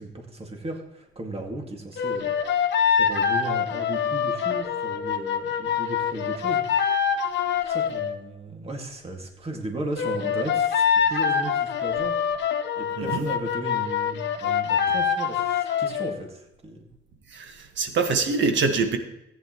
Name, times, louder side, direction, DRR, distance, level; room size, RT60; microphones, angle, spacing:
voice 1, 0.0-2.4 2.9-7.1 7.6-12.1 12.8-16.9, right 2 dB, 30° right, 2 dB, 2.1 m, -36 dB
sound 1, 2.0-8.2 10.0-16.2, left 7 dB, 65° left, 1.0 m, -25 dB
voice 2, 17.3-19.0, right 4 dB, 70° right, 6 dB, 1.6 m, -24 dB
15.0 x 9.5 x 3.1 m, 0.89 s
cardioid pair, 90°, 20 cm